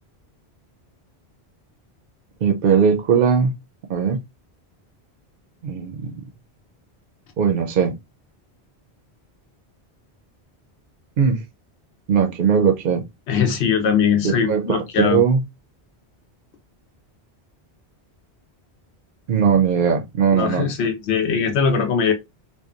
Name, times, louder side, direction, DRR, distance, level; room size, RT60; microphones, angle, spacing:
voice 1, 2.4-3.5 3.9-4.2 5.6-6.1 7.4-7.9 11.2-11.4 12.1-13.0 14.2-15.4 19.3-20.7, right 6 dB, 60° right, 0.6 m, -19 dB
voice 2, 13.3-15.2 20.3-22.1, left 6 dB, 85° left, 0.9 m, -20 dB
2.7 x 2.2 x 2.4 m
omnidirectional pair, 1.1 m